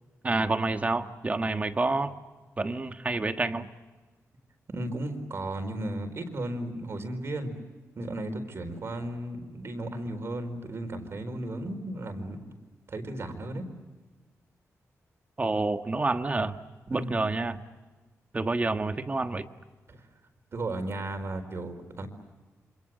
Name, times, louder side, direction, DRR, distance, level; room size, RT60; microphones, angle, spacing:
voice 1, 0.2-2.1 2.6-3.7 15.4-16.6 16.9-17.6 18.3-19.4, right 3 dB, 25° right, 7 dB, 1.5 m, -28 dB
voice 2, 4.7-7.5 7.9-12.5 12.9-13.7 16.9-17.1 19.9-20.0 20.5-22.1, right 1 dB, 50° right, 8 dB, 4.6 m, -35 dB
28.0 x 26.5 x 7.8 m, 1.3 s
wide cardioid pair, 130°, 6 cm